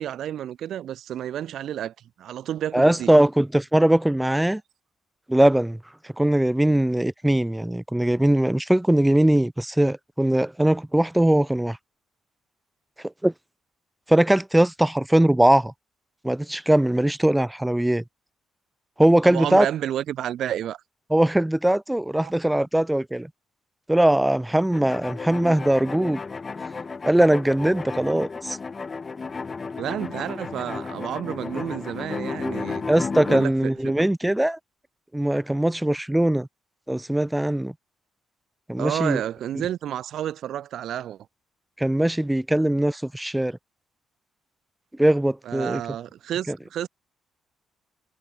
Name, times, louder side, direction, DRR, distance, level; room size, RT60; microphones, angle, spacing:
voice 1, 0.0-3.2 19.2-20.8 22.2-22.3 29.7-32.8 33.3-33.9 38.8-41.3 45.4-46.9, right 11 dB, 70° right, 3.1 m, -30 dB
voice 2, 2.7-4.6 5.3-5.8 6.2-11.8 13.2-13.3 14.1-15.7 16.2-18.0 19.0-19.7 21.1-23.3 23.9-26.2 27.0-28.6 32.9-34.6 35.1-36.5 36.9-37.7 38.7-39.2 41.8-43.6 45.0-45.8 46.5-46.6, right 1 dB, 5° right, 0.4 m, -20 dB
sound 1, 24.7-33.5, left 4 dB, 30° left, 5.3 m, -33 dB
cardioid pair, 90°, 0 cm